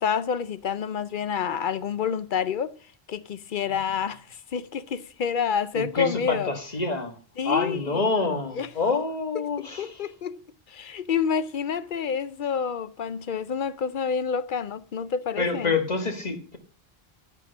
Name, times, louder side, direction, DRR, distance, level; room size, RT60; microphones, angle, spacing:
voice 1, 0.0-2.7 3.1-6.5 7.4-8.1 8.6-8.7 9.8-10.4 10.7-15.7, left 7 dB, 60° left, 0.7 m, -28 dB
voice 2, 5.7-7.2 7.4-10.0 15.4-16.6, left 3 dB, 40° left, 1.6 m, -27 dB
11.0 x 6.0 x 7.0 m
omnidirectional pair, 1.0 m